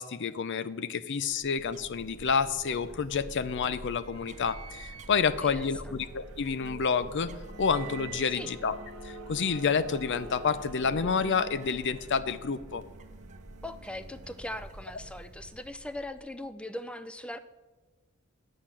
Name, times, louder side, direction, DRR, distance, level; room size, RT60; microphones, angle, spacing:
voice 1, 0.0-7.3 7.6-8.8 9.0-12.8, left 5 dB, 55° left, 14 dB, 0.5 m, -29 dB
sound 1, 1.2-16.4, right 1 dB, 35° right, 0.7 m, -48 dB
sound 2, 2.4-15.9, right 3 dB, 90° right, 0.9 m, -48 dB
voice 2, 5.4-6.0 8.2-8.5 13.6-17.4, left 1 dB, 5° left, 11 dB, 0.5 m, -40 dB
8.8 x 7.2 x 7.5 m, 1.2 s
head